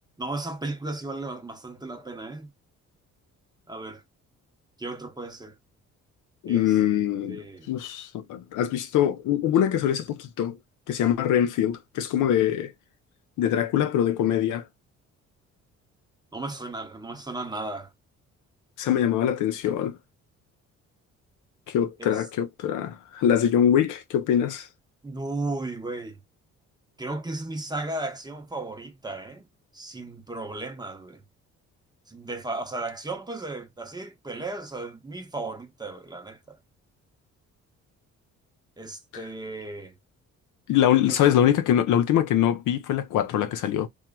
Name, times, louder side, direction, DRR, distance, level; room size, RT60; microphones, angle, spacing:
voice 1, 0.2-2.5 3.7-4.0 4.8-5.5 6.5-6.8 7.3-7.7 16.3-17.9 22.0-22.2 25.0-26.2 27.0-29.5 29.7-31.2 32.1-36.6 38.8-39.9 41.1-41.3, right 2 dB, 15° right, 0.7 m, -35 dB
voice 2, 6.4-7.4 7.7-10.6 10.9-12.7 13.4-14.6 18.8-20.0 21.7-24.7 40.7-43.9, left 10 dB, 85° left, 0.6 m, -23 dB
3.0 x 2.2 x 2.2 m
cardioid pair, 90°, 30 cm